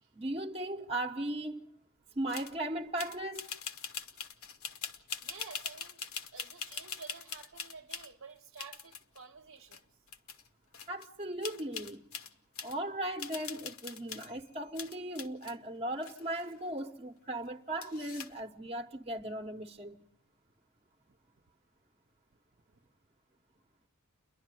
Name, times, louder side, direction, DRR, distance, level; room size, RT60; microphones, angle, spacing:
voice 1, 0.1-1.6 2.2-3.4 10.9-12.0 12.6-20.0, right 1 dB, 30° right, 1.0 m, -37 dB
sound 1, 2.3-2.5 3.0-8.1 8.6-9.2 9.7-9.8 10.1-10.5 10.7-11.1 11.4-12.8 13.2-14.4 14.8-15.5 16.0-16.8 17.8-18.4, left 6 dB, 70° left, 1.1 m, -43 dB
voice 2, 5.2-6.0 6.3-9.9 22.7-22.8, right 5 dB, 55° right, 0.9 m, -51 dB
29.5 x 11.5 x 9.1 m
head